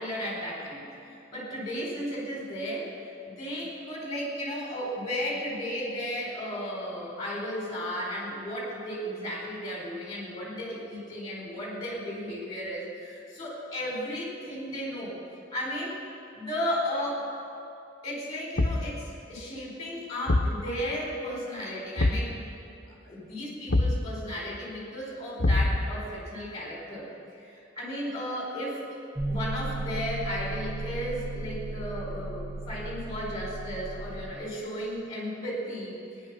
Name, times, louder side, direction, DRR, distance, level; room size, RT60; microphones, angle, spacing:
voice 1, 0.0-15.2 15.5-16.0 16.3-17.2 18.0-22.4 23.0-27.1 27.4-36.0, equal, 20° left, -4 dB, 4.4 m, -34 dB
Thump thud, 18.6-19.0 20.3-20.6 22.0-22.3 23.7-24.1 25.4-26.0, left 2 dB, 70° left, 0.8 m, -24 dB
sound 1, 29.2-34.3, right 2 dB, 5° right, 0.9 m, -35 dB
19.0 x 10.0 x 6.1 m, 2.5 s
head